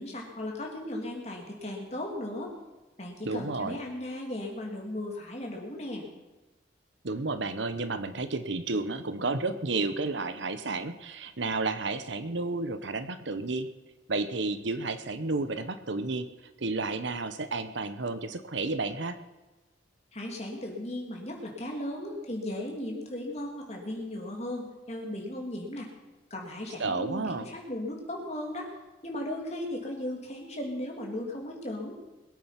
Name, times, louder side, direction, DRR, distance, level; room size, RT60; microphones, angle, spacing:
voice 1, 0.0-2.5 3.0-6.1 20.1-25.9 26.3-28.7 29.0-32.0, left 1 dB, 35° left, 0 dB, 2.9 m, -36 dB
voice 2, 3.2-3.8 7.0-13.7 14.1-16.3 16.6-19.2 26.8-27.4, right 3 dB, 70° right, 11 dB, 1.0 m, -31 dB
21.5 x 8.9 x 5.9 m, 1.2 s
head